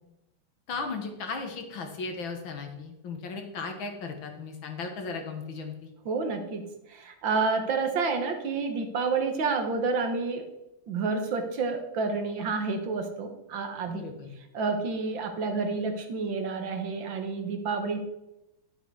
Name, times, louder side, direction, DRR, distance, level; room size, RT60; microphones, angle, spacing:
voice 1, 0.7-5.9 13.9-14.3, left 4 dB, 70° left, 4 dB, 2.2 m, -36 dB
voice 2, 6.1-10.5 10.9-14.0 14.5-18.0, right 4 dB, 70° right, 6 dB, 2.0 m, -29 dB
10.5 x 8.0 x 4.7 m, 0.91 s
omnidirectional pair, 2.2 m